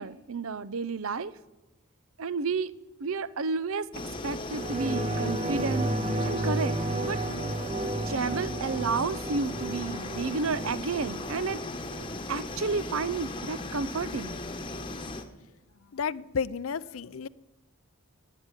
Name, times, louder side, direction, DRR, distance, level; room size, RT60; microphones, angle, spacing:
voice 1, 0.0-1.3 2.2-2.7 3.0-3.9 4.2-6.0 6.2-7.2 8.1-11.6 12.3-14.4, right 4 dB, 70° right, 0.6 m, -31 dB
sound 1, 3.9-15.2, left 2 dB, 25° left, 1.1 m, -37 dB
sound 2, 4.5-13.5 13.9-14.0, right 2 dB, 30° right, 0.6 m, -33 dB
voice 2, 15.9-17.3, left 6 dB, 65° left, 0.5 m, -32 dB
14.5 x 9.7 x 9.8 m
head